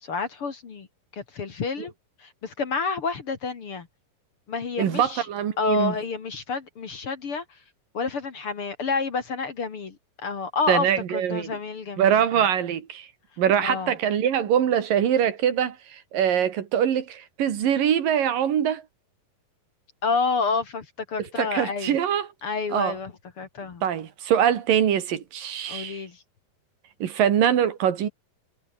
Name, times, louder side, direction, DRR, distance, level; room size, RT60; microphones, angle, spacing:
voice 1, 0.0-0.9 1.1-1.9 2.2-3.9 4.5-5.3 5.6-7.6 7.9-10.9 11.1-12.2 13.6-13.9 20.0-22.0 22.4-23.8 25.7-26.2, left 4 dB, 45° left, 2.7 m, -29 dB
voice 2, 4.8-5.9 10.7-11.6 12.0-13.1 13.4-18.8 21.4-22.3 22.7-22.9 23.8-26.0 27.0-28.1, right 9 dB, 75° right, 3.8 m, -23 dB
omnidirectional pair, 4.0 m